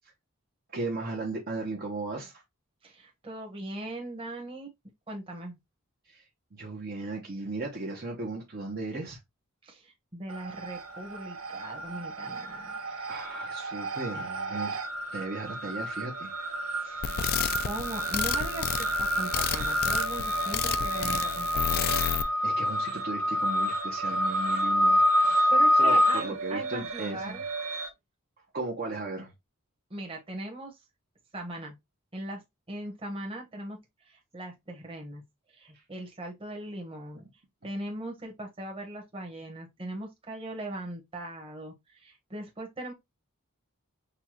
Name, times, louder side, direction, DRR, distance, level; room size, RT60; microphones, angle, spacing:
voice 1, 0.7-2.4 6.1-9.2 13.1-14.8 15.1-16.3 22.2-27.4 28.5-29.3 35.7-35.8, right 2 dB, 45° right, 0.9 m, -36 dB
voice 2, 2.8-4.7 5.1-5.6 9.6-13.2 16.8-17.2 17.6-21.9 25.5-27.4 29.9-30.7 31.3-31.8 32.1-32.4 32.7-33.8 34.0-35.2 35.5-37.2 37.6-42.9, right 1 dB, 25° right, 1.3 m, -39 dB
sound 1, 10.3-11.0 11.3-27.9, equal, 80° right, 0.6 m, -28 dB
sound 2, 17.0-22.2, left 8 dB, 45° left, 0.4 m, -31 dB
6.7 x 2.3 x 2.9 m
head